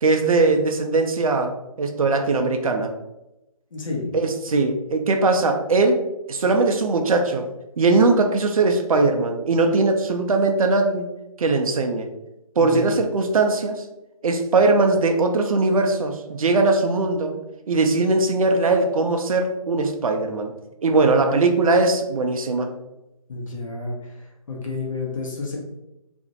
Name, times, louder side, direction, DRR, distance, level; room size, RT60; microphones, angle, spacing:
voice 1, 0.0-2.9 4.1-6.0 6.3-7.5 7.8-11.1 11.4-12.1 12.6-13.8 14.2-17.4 17.7-20.5 20.8-22.7, right 3 dB, 65° right, 4 dB, 0.4 m, -20 dB
voice 2, 3.7-4.1 12.6-12.9 23.3-24.1 24.5-25.6, left 3 dB, 60° left, -2 dB, 0.7 m, -30 dB
2.5 x 2.0 x 2.6 m, 0.93 s
figure-of-eight pair, 155°, 19 cm